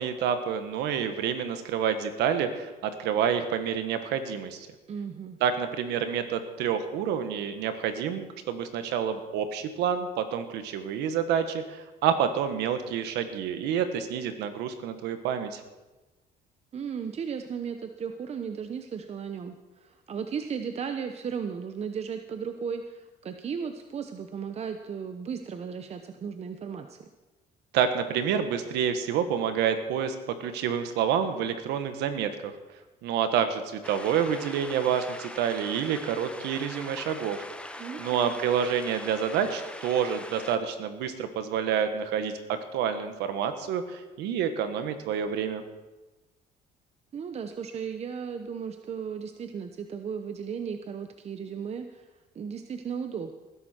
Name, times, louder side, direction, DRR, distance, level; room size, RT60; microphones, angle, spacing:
voice 1, 0.0-4.7 5.4-15.6 27.7-32.5 33.0-37.5 38.0-45.6, right 8 dB, 85° right, 9 dB, 1.4 m, -28 dB
voice 2, 4.9-5.4 16.7-27.1 37.8-38.3 47.1-52.1 52.3-53.3, right 6 dB, 40° right, 7 dB, 0.8 m, -35 dB
sound 1, 33.8-40.6, left 1 dB, 5° left, 1.0 m, -42 dB
19.5 x 11.0 x 4.5 m, 1.1 s
cardioid pair, 110°, 17 cm